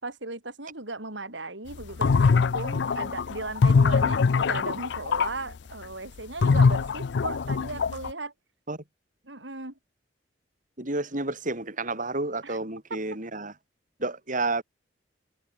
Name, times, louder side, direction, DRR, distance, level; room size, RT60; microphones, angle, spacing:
voice 1, 0.0-8.3 9.2-9.7 12.4-12.6 12.9-13.0, right 2 dB, 70° right, 6.6 m, -37 dB
sound 1, 1.8-5.3 6.4-8.1, left 5 dB, 65° left, 0.5 m, -22 dB
voice 2, 10.8-13.5 14.0-14.6, right 2 dB, 45° right, 5.3 m, -30 dB
head